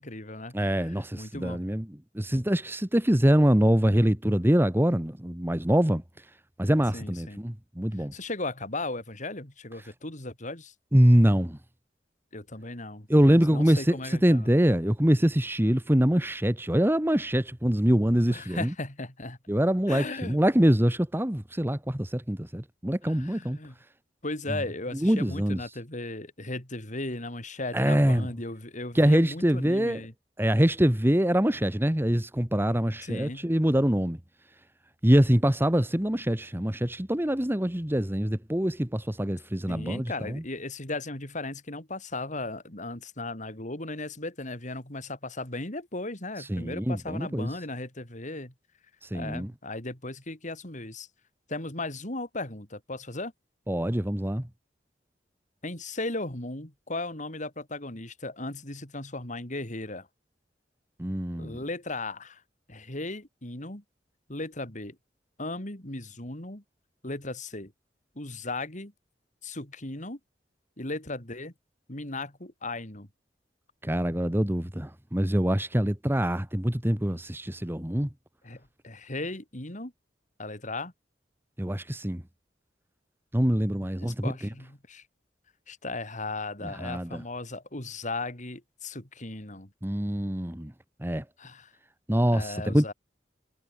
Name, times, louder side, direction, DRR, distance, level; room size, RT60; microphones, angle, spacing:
voice 1, 0.0-1.6 6.9-7.4 8.0-10.7 12.3-14.5 18.3-19.4 19.9-20.4 23.0-23.8 24.2-30.1 33.0-33.5 39.7-48.5 49.1-51.1 51.5-53.3 55.6-60.1 61.4-62.4 62.7-63.8 64.3-65.0 65.4-66.6 67.0-67.7 68.1-68.9 69.4-70.2 70.8-71.5 71.9-73.1 78.4-79.9 80.4-80.9 84.0-85.0 85.7-89.7 91.4-91.7 92.3-92.9, left 2 dB, 45° left, 4.8 m, -36 dB
voice 2, 0.5-1.8 2.1-6.0 6.6-8.1 10.9-11.6 13.1-18.7 19.5-23.6 25.0-25.6 27.7-28.3 28.9-30.0 30.4-34.2 35.0-40.4 46.5-47.5 49.1-49.5 53.7-54.4 61.0-61.6 73.8-78.1 81.6-82.2 83.3-84.3 86.8-87.2 89.8-90.7 91.0-91.2 92.1-92.9, equal, 15° right, 1.5 m, -24 dB
head